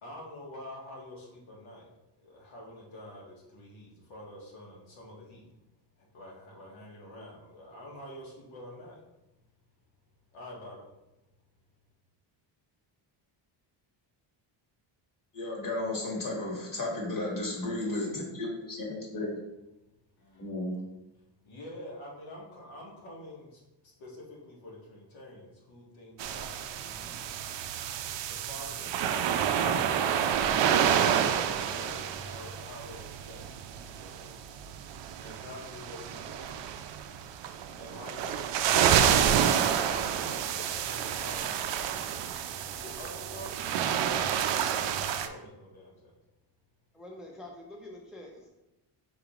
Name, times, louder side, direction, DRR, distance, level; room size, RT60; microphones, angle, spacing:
voice 1, 0.0-1.9 2.2-5.5 6.1-9.0 10.3-10.9 20.2-20.5 21.4-27.5 28.3-30.1 31.1-34.6 35.2-36.6 37.8-42.0 42.7-44.8 45.1-46.1, left 1 dB, 70° left, -3 dB, 1.6 m, -47 dB
voice 2, 15.3-19.3 20.4-20.7, left 2 dB, 40° left, -1 dB, 1.7 m, -33 dB
sound 1, 26.2-45.3, right 9 dB, 60° right, 0.5 m, -29 dB
voice 3, 46.9-48.5, left 1 dB, ahead, -1 dB, 0.5 m, -46 dB
4.9 x 3.6 x 3.0 m, 0.95 s
cardioid pair, 100°, 49 cm